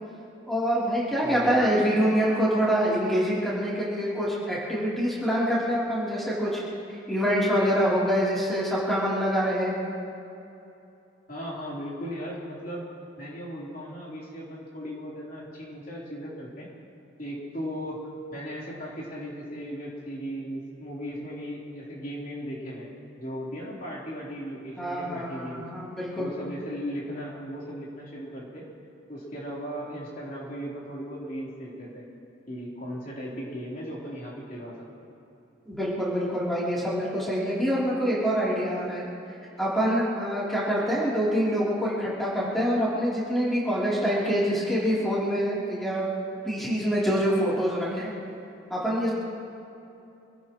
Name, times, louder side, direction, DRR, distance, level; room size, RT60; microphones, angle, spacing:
voice 1, 0.5-6.6 6.9-9.7 24.8-26.3 35.6-39.0 39.6-46.1 46.4-48.1 48.7-49.1, equal, ahead, -9 dB, 3.3 m, -25 dB
voice 2, 1.2-1.6 11.3-12.9 13.2-16.7 17.2-22.9 23.2-25.6 26.2-28.7 29.1-32.0 32.5-34.7, equal, 45° left, -6 dB, 3.7 m, -37 dB
26.0 x 17.5 x 3.1 m, 2.8 s
head